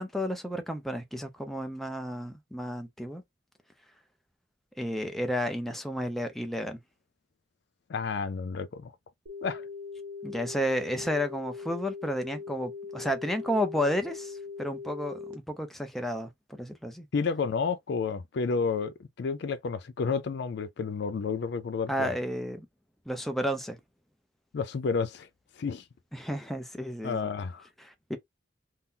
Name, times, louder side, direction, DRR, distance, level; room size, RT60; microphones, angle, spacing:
voice 1, 0.0-3.2 4.8-6.8 10.2-17.1 21.9-22.7 23.1-23.8 26.1-27.3 27.8-28.2, equal, ahead, 0.6 m, -32 dB
voice 2, 7.9-8.9 9.4-9.7 17.1-22.1 24.5-25.3 25.6-25.8 27.0-27.7, left 5 dB, 60° left, 0.4 m, -31 dB
sound 1, 9.3-15.3, left 5 dB, 85° right, 0.9 m, -41 dB
2.8 x 2.0 x 3.7 m
head